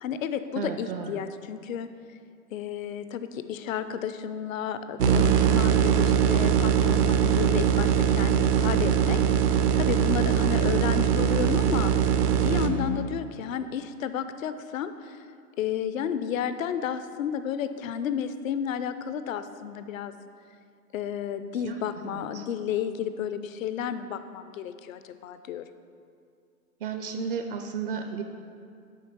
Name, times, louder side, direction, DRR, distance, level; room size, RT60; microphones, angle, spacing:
voice 1, 0.0-1.9 2.5-9.2 9.8-11.9 12.4-15.2 15.6-20.1 20.9-25.6, left 8 dB, 60° left, 11 dB, 0.7 m, -32 dB
voice 2, 0.6-1.2 21.6-22.4 26.8-28.2, right 6 dB, 40° right, 6 dB, 0.5 m, -34 dB
sound 1, 5.0-12.7, right 8 dB, 80° right, 0.9 m, -22 dB
8.4 x 5.3 x 6.0 m, 2.3 s
hypercardioid pair, 125°, 46 cm